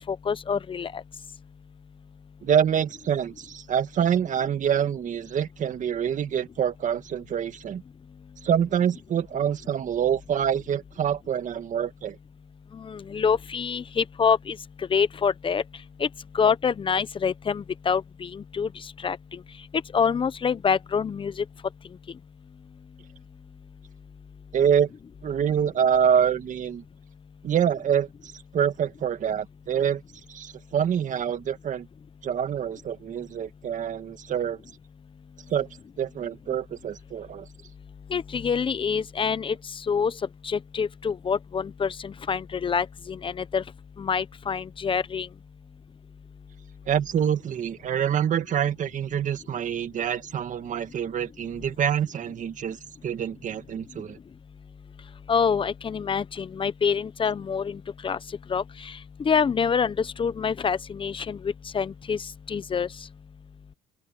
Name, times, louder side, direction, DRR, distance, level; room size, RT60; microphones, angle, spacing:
voice 1, 0.1-1.0 12.7-14.6 14.9-15.6 16.0-16.1 16.3-18.7 19.0-19.4 19.9-21.4 38.1-39.6 39.9-40.1 40.4-43.6 44.0-45.3 55.3-58.2 58.5-58.9 59.2-62.2 62.5-62.9, left 6 dB, 30° left, 1.0 m, -26 dB
voice 2, 2.4-7.8 8.4-12.2 24.5-24.9 25.2-26.8 27.4-30.0 30.3-31.9 32.2-34.6 35.5-35.7 36.0-37.5 46.9-52.8 53.0-54.2, right 8 dB, 50° right, 1.8 m, -26 dB
open air
cardioid pair, 110°, 17 cm